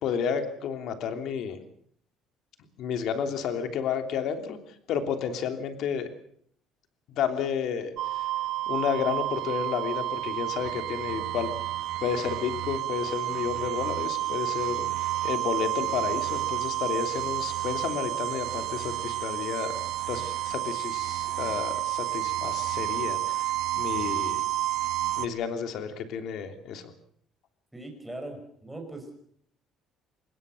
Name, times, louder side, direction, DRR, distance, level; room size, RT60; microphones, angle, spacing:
voice 1, 0.0-1.6 2.8-4.6 4.9-6.1 7.1-7.9 8.7-11.5 12.0-14.9 15.2-19.8 20.1-24.4 25.2-26.8, left 7 dB, 55° left, 7 dB, 3.1 m, -31 dB
sound 1, 8.0-25.3, right 15 dB, 65° right, 1.4 m, -30 dB
voice 2, 27.7-29.1, right 2 dB, 5° right, 3 dB, 5.4 m, -40 dB
25.0 x 21.0 x 6.5 m, 0.63 s
cardioid pair, 175°, 0 cm